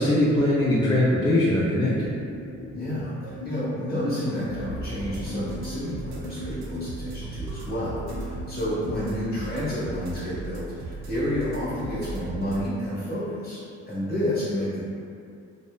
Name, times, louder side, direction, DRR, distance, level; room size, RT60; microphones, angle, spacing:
voice 1, 0.0-2.1, left 1 dB, 15° left, -9 dB, 0.4 m, -21 dB
sound 1, 2.0-9.0, equal, 60° left, 0.7 m, -38 dB
voice 2, 2.7-13.6 13.9-14.8, equal, 35° left, -11 dB, 0.9 m, -30 dB
sound 2, 4.9-12.7, right 2 dB, 65° right, 0.5 m, -38 dB
2.7 x 2.1 x 2.3 m, 2.4 s
cardioid pair, 90°, 30 cm